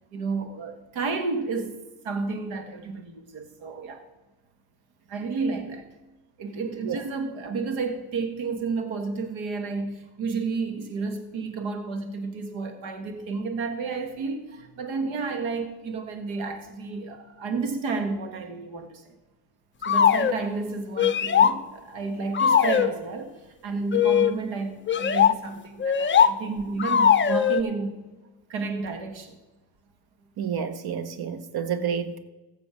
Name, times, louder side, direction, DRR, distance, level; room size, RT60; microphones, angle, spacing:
voice 1, 0.1-1.7 2.0-4.1 5.1-5.9 6.4-19.1 19.9-28.0 28.5-29.4, right 4 dB, 85° right, 1.6 m, -31 dB
sound 1, 19.8-20.4 21.0-21.6 22.3-22.9 23.9-24.3 24.9-25.3 25.8-26.3 26.8-27.6, left 8 dB, 25° left, 0.5 m, -20 dB
voice 2, 30.4-32.2, right 7 dB, 55° right, 1.1 m, -29 dB
15.5 x 6.8 x 4.9 m
cardioid pair, 95°, 46 cm